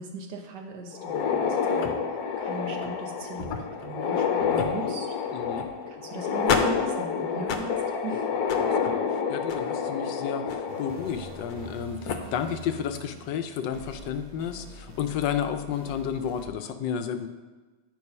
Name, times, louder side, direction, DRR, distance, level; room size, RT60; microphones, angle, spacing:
voice 1, 0.0-5.4 5.9-7.8 8.0-8.3, right 2 dB, 70° right, 2 dB, 1.6 m, -38 dB
sound 1, 0.9-11.7 12.1-12.2 13.0-13.1 13.6-13.7 15.0-15.3, left 6 dB, 65° left, 1.2 m, -28 dB
voice 2, 5.3-5.7 8.6-17.3, left 8 dB, 80° left, 8 dB, 1.3 m, -32 dB
sound 2, 10.7-16.4, equal, 45° right, 1.0 m, -45 dB
9.6 x 4.7 x 5.4 m, 1.3 s
omnidirectional pair, 1.9 m